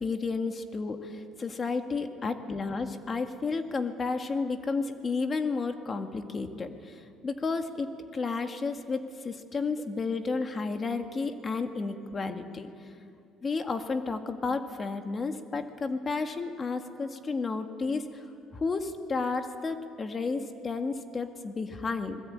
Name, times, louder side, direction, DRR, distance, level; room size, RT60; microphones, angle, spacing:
voice 1, 0.0-7.9 8.1-12.7 13.4-18.2 18.5-22.2, left 4 dB, 35° left, 6 dB, 2.0 m, -32 dB
25.5 x 21.0 x 8.9 m, 2.4 s
supercardioid pair, 85°, 0 cm